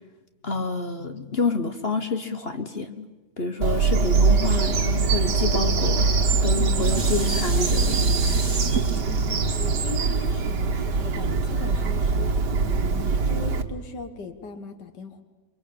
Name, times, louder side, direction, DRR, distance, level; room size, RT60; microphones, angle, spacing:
voice 1, 0.4-3.1 3.4-6.1 6.4-8.0, left 3 dB, 40° left, 8 dB, 1.4 m, -28 dB
Bird vocalization bird call bird song, 3.6-13.6, right 4 dB, 85° right, 2.1 m, -22 dB
Dishes pots and pans, 6.2-11.5 12.0-12.1, right 5 dB, 45° right, 3.0 m, -34 dB
voice 2, 9.1-15.2, left 4 dB, 85° left, 7 dB, 2.2 m, -39 dB
29.0 x 23.5 x 8.8 m, 1.2 s
omnidirectional pair, 1.8 m